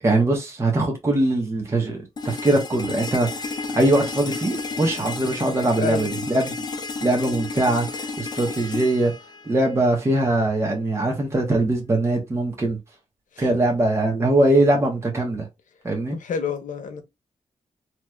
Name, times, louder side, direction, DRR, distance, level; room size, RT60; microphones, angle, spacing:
voice 1, 0.0-6.5 7.0-9.1 9.4-12.8 13.4-15.5 15.8-16.2, right 2 dB, 20° right, 0.9 m, -22 dB
sound 1, 2.2-10.1, left 4 dB, 35° left, 0.5 m, -32 dB
voice 2, 5.8-6.1 13.3-13.6 16.1-17.0, left 5 dB, 90° left, 0.7 m, -29 dB
3.1 x 2.9 x 2.3 m
wide cardioid pair, 180°, 13 cm